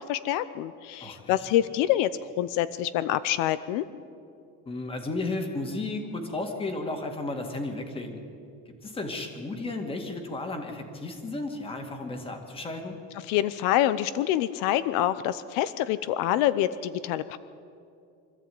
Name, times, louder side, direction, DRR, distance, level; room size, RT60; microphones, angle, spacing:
voice 1, 0.0-2.1 2.4-3.8 13.3-17.4, left 13 dB, 80° left, 15 dB, 0.8 m, -26 dB
voice 2, 1.0-1.4 4.7-8.2 8.8-13.0, left 2 dB, 15° left, 5 dB, 2.1 m, -33 dB
24.5 x 14.0 x 9.4 m, 2.5 s
cardioid pair, 175°, 32 cm